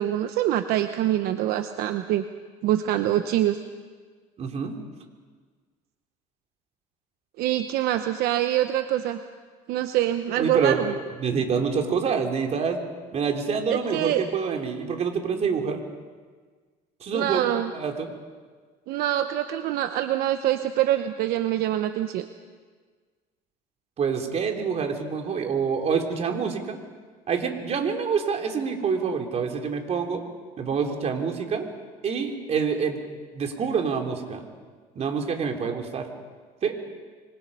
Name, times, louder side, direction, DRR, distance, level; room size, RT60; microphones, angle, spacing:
voice 1, 0.0-2.2 2.6-3.6 7.4-9.2 9.7-10.9 13.7-14.2 17.1-17.7 18.9-22.3, right 12 dB, 70° right, 8 dB, 1.0 m, -25 dB
voice 2, 4.4-4.7 10.4-12.8 13.1-15.8 17.0-18.1 24.0-26.8 27.3-30.2 30.6-31.7 32.0-33.0 33.3-34.4 35.0-36.1 36.6-36.8, right 6 dB, 40° right, 3 dB, 3.4 m, -26 dB
25.5 x 25.0 x 5.5 m, 1.5 s
cardioid pair, 125°, 17 cm